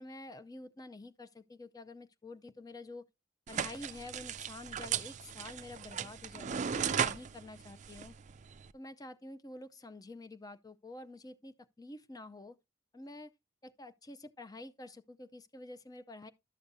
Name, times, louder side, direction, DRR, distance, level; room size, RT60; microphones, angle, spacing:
voice 1, 0.0-3.1 3.5-8.2 8.7-12.6 12.9-13.3 13.6-16.3, left 2 dB, 20° left, 0.5 m, -48 dB
sound 1, 3.5-8.7, right 8 dB, 40° right, 0.4 m, -37 dB
12.0 x 6.8 x 2.6 m
head